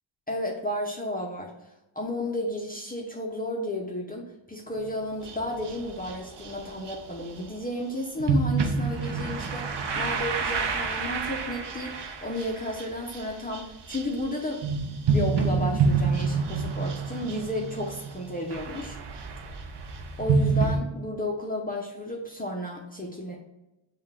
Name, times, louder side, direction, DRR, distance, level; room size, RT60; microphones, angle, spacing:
voice 1, 0.3-1.7 1.9-19.0 20.2-23.4, left 1 dB, 20° left, -2 dB, 0.7 m, -33 dB
sound 1, 4.7-4.9 5.2-7.5 8.2-20.8, right 5 dB, 55° right, 0.7 m, -29 dB
5.3 x 2.5 x 3.5 m, 0.95 s
wide cardioid pair, 95°, 49 cm